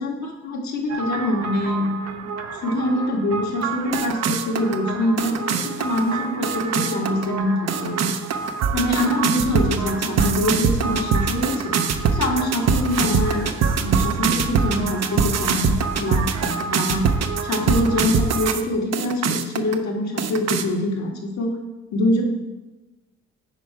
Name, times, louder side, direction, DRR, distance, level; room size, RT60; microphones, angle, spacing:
voice 1, 0.0-2.0 2.2-8.1 8.7-11.7 12.1-13.5 13.8-17.1 17.4-21.6 21.9-22.2, left 1 dB, 65° left, 0 dB, 1.7 m, -24 dB
sound 1, 0.9-18.6 18.9-19.7 20.2-20.6, right 6 dB, 60° right, 0.7 m, -24 dB
9.8 x 4.5 x 4.6 m, 1.1 s
cardioid pair, 90°, 30 cm